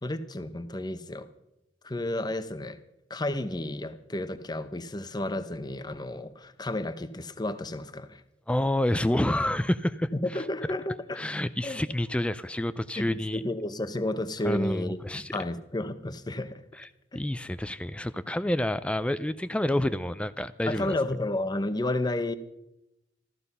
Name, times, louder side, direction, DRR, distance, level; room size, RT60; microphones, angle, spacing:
voice 1, 0.0-1.3 1.8-2.8 3.1-8.2 10.2-11.2 11.6-11.8 13.0-16.6 17.1-17.2 20.7-22.3, left 1 dB, 25° left, 11 dB, 0.9 m, -32 dB
voice 2, 8.5-10.1 11.1-13.4 14.4-15.4 17.1-20.9, left 1 dB, 5° left, 14 dB, 0.4 m, -28 dB
14.5 x 14.0 x 5.5 m, 0.88 s
head